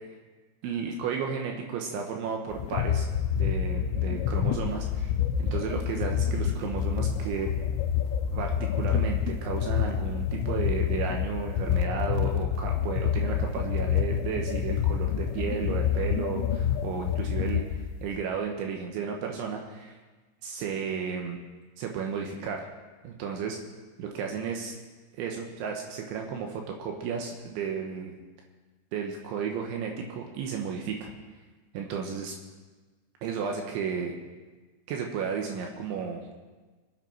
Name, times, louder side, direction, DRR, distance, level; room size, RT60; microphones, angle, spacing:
voice 1, 0.6-3.1 3.3-5.1 5.4-7.5 8.3-20.0 20.4-21.4 21.8-22.6 23.0-23.6 24.0-24.8 25.1-28.1 28.9-31.1 31.7-32.3 33.2-34.1 34.9-36.2, right 6 dB, 75° right, 2 dB, 3.3 m, -33 dB
sound 1, 2.5-18.2, left 9 dB, 80° left, 3.3 m, -28 dB
24.5 x 8.9 x 4.6 m, 1.3 s
omnidirectional pair, 5.8 m